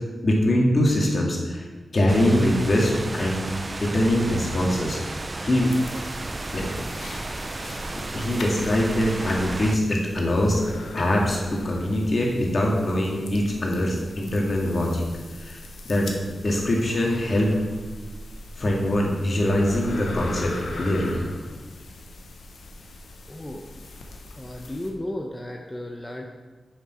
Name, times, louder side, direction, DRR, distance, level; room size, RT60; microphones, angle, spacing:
voice 1, 0.2-1.6 1.9-3.5 3.8-5.0 5.4-5.7 6.5-6.7 8.1-10.6 10.9-15.0 15.4-15.6 15.9-16.1 16.4-17.5 18.6-21.2, left 1 dB, 50° left, -2 dB, 2.0 m, -23 dB
sound 1, 2.1-9.8, right 2 dB, 40° right, 0.5 m, -33 dB
sound 2, 5.7-24.9, left 2 dB, 80° left, 0.9 m, -40 dB
voice 2, 23.3-23.6 24.4-26.3, left 1 dB, 20° left, 1 dB, 0.8 m, -34 dB
7.2 x 5.8 x 4.4 m, 1.3 s
cardioid pair, 45°, 0 cm